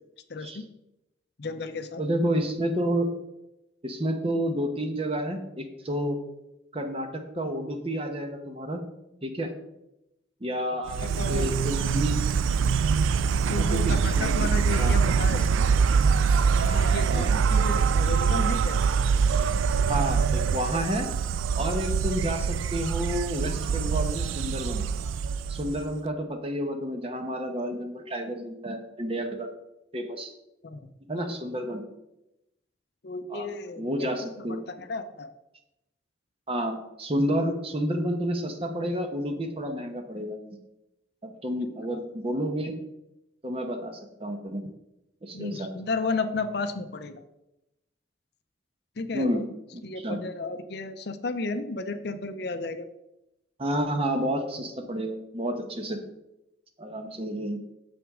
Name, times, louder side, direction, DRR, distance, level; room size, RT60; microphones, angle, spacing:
voice 1, 0.3-0.7 1.4-2.0 11.0-11.5 11.8-11.9 13.5-15.6 16.5-18.8 30.6-30.8 33.0-34.1 34.5-34.6 34.9-35.3 41.9-42.0 45.3-47.2 49.0-49.4 49.8-52.9, left 3 dB, 55° left, 10 dB, 0.6 m, -33 dB
voice 2, 2.0-3.1 3.8-6.2 6.7-8.8 9.2-9.5 10.4-12.2 13.6-14.5 14.8-15.0 17.1-17.3 19.9-21.1 21.6-24.8 25.5-29.5 29.9-30.3 31.1-31.8 33.3-33.5 33.7-34.6 36.5-40.4 41.2-42.8 43.4-44.7 45.2-45.7 49.1-49.5 49.7-50.2 53.6-56.0 56.8-57.6, equal, 30° right, 5 dB, 1.0 m, -30 dB
Insect, 10.9-26.0, right 6 dB, 90° right, 0.3 m, -24 dB
9.0 x 7.0 x 3.6 m, 0.90 s
head